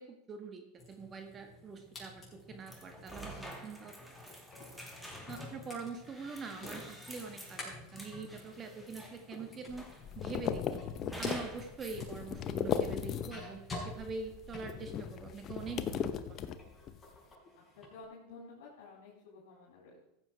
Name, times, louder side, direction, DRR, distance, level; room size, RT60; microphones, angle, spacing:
voice 1, 0.0-3.9 4.3-4.4 5.3-9.9 10.1-10.9 11.2-16.4, right 4 dB, 30° right, 5 dB, 1.7 m, -44 dB
sound 1, 0.8-15.9 16.3-17.9, left 2 dB, 20° left, 5.7 m, -50 dB
sound 2, 2.7-9.3 9.8-10.4 11.1-12.1, equal, ahead, 2.5 m, -48 dB
sound 3, 9.7-13.6 13.9-17.0, left 8 dB, 40° left, 0.9 m, -37 dB
voice 2, 17.8-20.0, left 3 dB, 75° left, -4 dB, 3.8 m, -52 dB
14.5 x 7.8 x 4.7 m, 0.77 s
hypercardioid pair, 110°, 0 cm